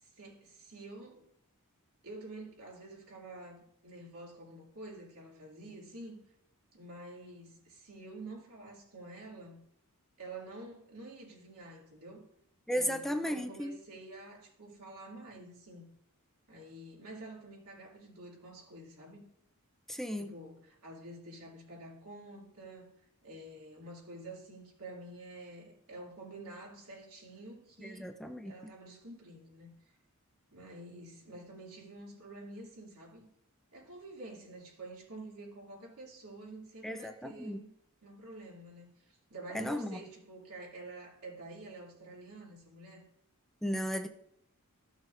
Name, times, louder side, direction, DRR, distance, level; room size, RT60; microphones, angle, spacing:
voice 1, 0.0-1.3 2.0-6.2 6.7-9.6 10.2-12.3 12.7-15.9 16.5-19.3 20.2-22.9 23.2-28.1 28.4-29.7 30.5-33.3 33.7-37.7 38.0-43.1, right 2 dB, 80° right, 2.7 m, -48 dB
voice 2, 12.7-13.8 19.9-20.3 27.8-28.5 36.8-37.6 39.5-40.0 43.6-44.1, equal, ahead, 0.5 m, -35 dB
13.5 x 6.3 x 2.6 m
head